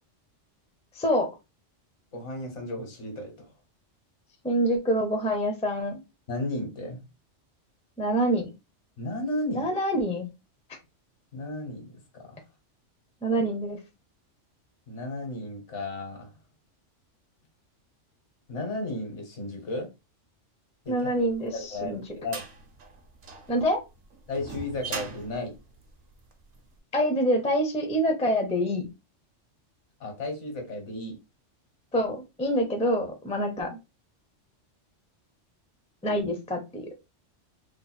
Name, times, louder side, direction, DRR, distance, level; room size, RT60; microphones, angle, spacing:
voice 1, 0.9-1.3 4.4-6.0 8.0-8.5 9.5-10.3 13.2-13.8 20.9-22.0 23.5-23.8 26.9-28.9 31.9-33.8 36.0-36.9, equal, 10° left, 4 dB, 0.5 m, -26 dB
voice 2, 2.1-3.5 6.3-7.0 9.0-9.7 11.3-12.4 14.9-16.3 18.5-19.9 20.8-21.1 21.5-22.4 24.3-25.5 30.0-31.2, left 2 dB, 70° left, 3 dB, 1.4 m, -34 dB
sound 1, 21.2-26.6, right 4 dB, 60° right, 0.9 m, -40 dB
3.0 x 2.1 x 4.1 m, 0.26 s
omnidirectional pair, 1.3 m